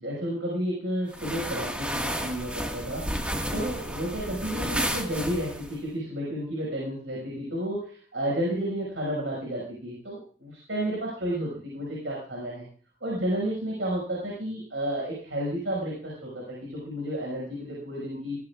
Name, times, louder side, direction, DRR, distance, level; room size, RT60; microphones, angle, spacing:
voice 1, 0.0-12.7 13.0-18.4, equal, 70° right, -3 dB, 6.0 m, -31 dB
sound 1, 1.1-5.8, equal, 5° right, 1.8 m, -32 dB
20.5 x 17.0 x 2.5 m, 0.44 s
head